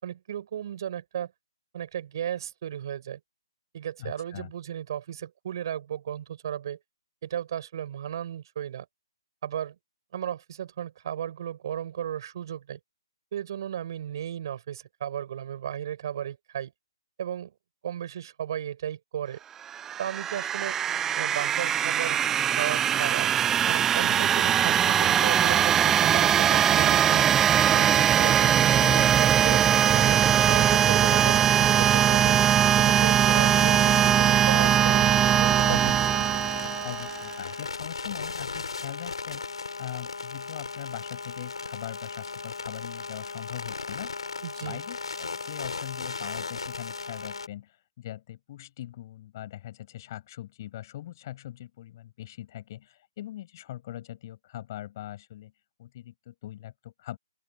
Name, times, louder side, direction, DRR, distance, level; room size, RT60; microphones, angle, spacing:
voice 1, 0.0-1.3 1.7-3.2 3.7-6.8 7.2-8.9 9.4-9.7 10.1-12.8 13.3-16.7 17.2-17.5 17.8-19.4 20.0-20.8 21.1-22.2 22.6-23.3 23.7-27.3 27.7-28.7 29.2-32.4 32.8-35.9 44.4-44.8, right 10 dB, 50° right, 8.0 m, -35 dB
voice 2, 4.0-4.5 28.8-29.1 35.7-36.3 36.8-39.5 39.8-44.1 44.6-55.5 55.8-57.2, left 13 dB, 40° left, 7.3 m, -41 dB
sound 1, 19.7-37.3, right 9 dB, 10° right, 0.4 m, -21 dB
sound 2, 33.2-47.5, left 4 dB, 80° left, 7.8 m, -37 dB
open air
figure-of-eight pair, 140°, 3 cm